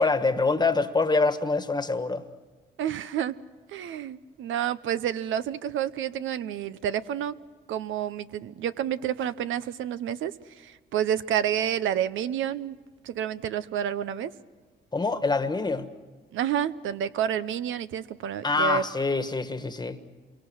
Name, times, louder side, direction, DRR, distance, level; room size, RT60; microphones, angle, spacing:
voice 1, 0.0-2.2 14.9-15.9 18.4-20.0, left 3 dB, 20° left, 1.5 m, -25 dB
voice 2, 2.8-3.4 3.7-7.3 7.7-12.8 13.0-14.3 16.3-18.8, right 9 dB, 80° right, 0.7 m, -29 dB
27.5 x 23.5 x 6.3 m
cardioid pair, 90°, 20 cm